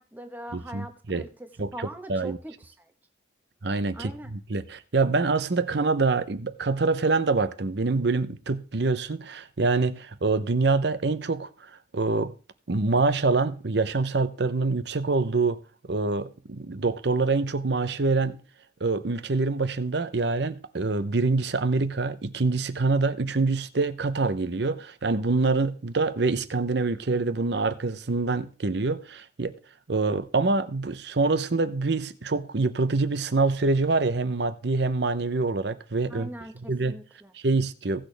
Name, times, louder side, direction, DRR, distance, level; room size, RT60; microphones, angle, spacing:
voice 1, 0.0-2.9 3.9-4.3 36.1-37.3, right 1 dB, 10° right, 1.0 m, -41 dB
voice 2, 0.5-1.3 1.6-2.4 3.6-11.5 11.9-12.3 12.7-15.6 15.8-18.4 18.8-29.5 29.9-36.3 36.7-36.9 37.3-38.1, right 3 dB, 60° right, 0.7 m, -25 dB
17.0 x 6.3 x 3.3 m
head